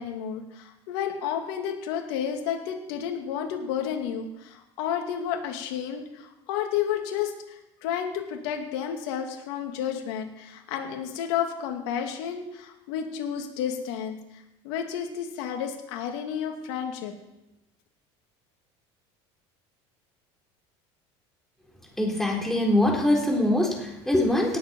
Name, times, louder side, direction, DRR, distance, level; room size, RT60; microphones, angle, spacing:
voice 1, 0.0-17.1, left 8 dB, 80° left, 3 dB, 2.4 m, -31 dB
voice 2, 22.0-24.6, left 1 dB, 5° left, -1 dB, 4.0 m, -23 dB
18.0 x 7.8 x 5.4 m, 0.91 s
supercardioid pair, 105°, 14 cm